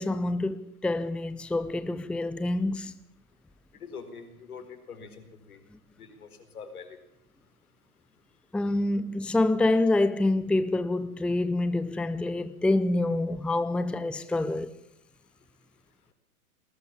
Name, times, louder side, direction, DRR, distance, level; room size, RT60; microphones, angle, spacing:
voice 1, 0.0-2.9 8.5-14.7, left 2 dB, ahead, 0.7 m, -27 dB
voice 2, 3.8-5.6 6.0-7.0, left 5 dB, 80° left, 4.4 m, -44 dB
20.0 x 18.5 x 7.3 m
hypercardioid pair, 105°, 43 cm